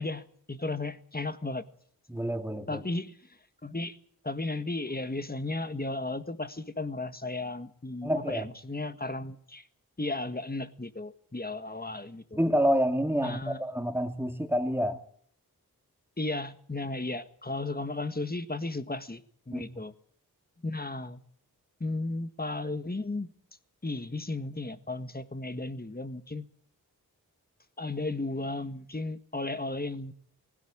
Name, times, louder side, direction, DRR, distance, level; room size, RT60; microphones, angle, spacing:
voice 1, 0.0-1.6 2.7-3.1 3.6-4.0 4.2-9.7 10.0-12.4 13.2-13.6 16.2-19.9 20.6-21.2 21.8-23.3 23.8-26.4 27.8-30.1, left 2 dB, 25° left, 1.7 m, -34 dB
voice 2, 2.1-2.8 8.0-8.4 12.3-15.0 19.5-19.6, equal, 5° right, 2.5 m, -28 dB
19.5 x 16.5 x 8.8 m
cardioid pair, 40°, 38 cm